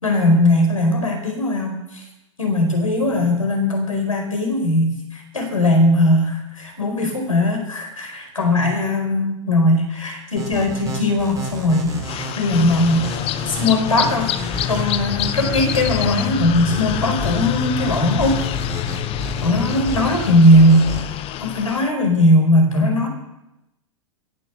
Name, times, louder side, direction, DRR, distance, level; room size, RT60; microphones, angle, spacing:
voice 1, 0.0-2.0 2.4-13.0 13.4-14.3 14.7-18.4 19.4-23.1, left 1 dB, 85° left, 2 dB, 4.6 m, -19 dB
sound 1, 10.4-21.0, equal, 20° right, 5.6 m, -31 dB
sound 2, 12.0-21.9, left 13 dB, 35° left, 0.9 m, -26 dB
17.0 x 7.7 x 7.1 m, 0.91 s
figure-of-eight pair, 95°, 17 cm